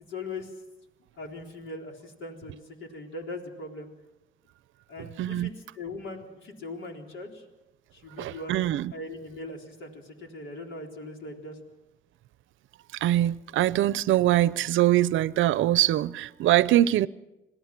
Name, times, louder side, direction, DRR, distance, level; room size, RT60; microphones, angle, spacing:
voice 1, 0.1-0.5 1.2-3.9 4.9-7.4 7.9-11.6, left 2 dB, 75° left, 4.0 m, -40 dB
voice 2, 5.0-5.5 8.2-8.9 12.9-17.1, right 13 dB, 80° right, 0.6 m, -23 dB
27.0 x 18.5 x 6.0 m
cardioid pair, 90°, 20 cm